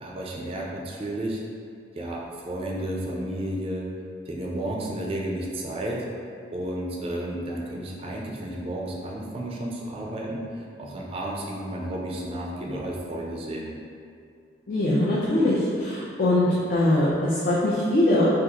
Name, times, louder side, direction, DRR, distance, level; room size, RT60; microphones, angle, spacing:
voice 1, 0.0-1.4 2.0-3.9 4.3-6.0 6.5-13.7, right 1 dB, 30° right, -2 dB, 0.4 m, -32 dB
voice 2, 14.7-18.3, left 1 dB, 50° left, -7 dB, 0.4 m, -22 dB
3.6 x 2.4 x 2.8 m, 2.3 s
head